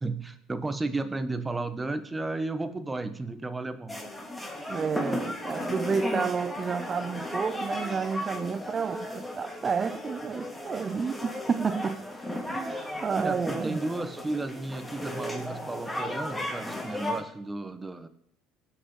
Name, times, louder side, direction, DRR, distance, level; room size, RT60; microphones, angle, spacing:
voice 1, 0.0-4.0 13.1-18.1, right 2 dB, 15° right, 1.3 m, -33 dB
sound 1, 3.9-17.2, left 1 dB, 10° left, 2.8 m, -35 dB
voice 2, 4.7-12.1 12.5-13.8, right 5 dB, 35° right, 0.4 m, -30 dB
18.5 x 6.5 x 4.0 m
supercardioid pair, 80°, 0 cm